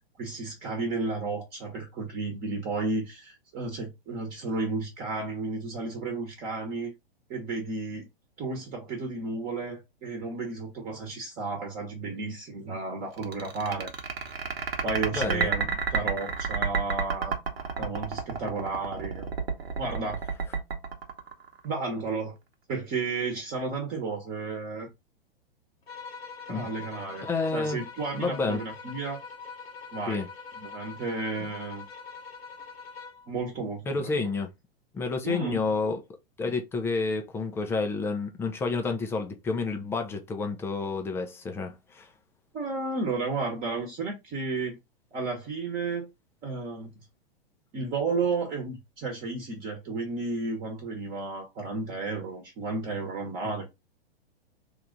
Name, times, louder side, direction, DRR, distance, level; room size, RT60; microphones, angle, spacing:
voice 1, 0.2-6.9 7.3-8.1 8.4-13.9 14.8-15.7 15.9-17.3 17.8-19.3 19.8-20.2 21.6-22.4 22.7-24.9 26.5-29.2 29.9-30.2 30.6-31.8 33.3-34.3 35.2-35.6 42.5-44.8 45.1-46.1 46.4-46.9 47.7-53.7, right 3 dB, 30° right, 1.0 m, -32 dB
sound 1, 13.2-21.8, right 5 dB, 80° right, 0.9 m, -30 dB
voice 2, 15.1-15.5 26.5-26.7 27.2-27.8 28.2-28.6 30.1-30.3 33.9-34.5 34.9-36.0 36.4-42.1, left 4 dB, 10° left, 0.3 m, -29 dB
sound 2, 25.9-33.3, left 5 dB, 85° left, 0.9 m, -43 dB
3.1 x 2.4 x 3.8 m
hypercardioid pair, 110°, 30 cm